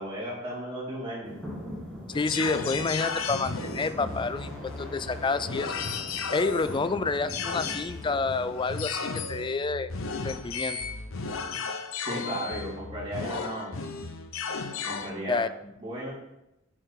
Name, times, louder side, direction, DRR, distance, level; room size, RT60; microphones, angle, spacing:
voice 1, 0.0-1.3 12.1-13.7 14.8-16.1, right 1 dB, 25° right, -7 dB, 4.4 m, -35 dB
sound 1, 1.2-8.7, equal, 5° left, 3.0 m, -41 dB
sound 2, 2.1-15.1, left 5 dB, 70° left, 0.9 m, -35 dB
voice 2, 2.1-5.7 6.3-9.9 10.2-10.8 15.3-15.5, left 4 dB, 25° left, 13 dB, 0.4 m, -29 dB
7.6 x 6.9 x 6.5 m, 0.90 s
head